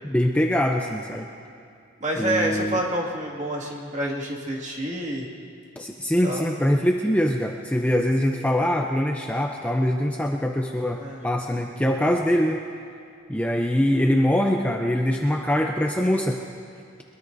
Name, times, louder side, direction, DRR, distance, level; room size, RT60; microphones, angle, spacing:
voice 1, 0.0-1.3 2.1-2.8 5.8-12.6 13.3-16.4, equal, 5° left, 1 dB, 0.5 m, -23 dB
voice 2, 2.0-5.3 6.2-6.5 10.9-11.2, right 1 dB, 35° right, -2 dB, 2.1 m, -28 dB
22.5 x 22.5 x 2.7 m, 2.4 s
head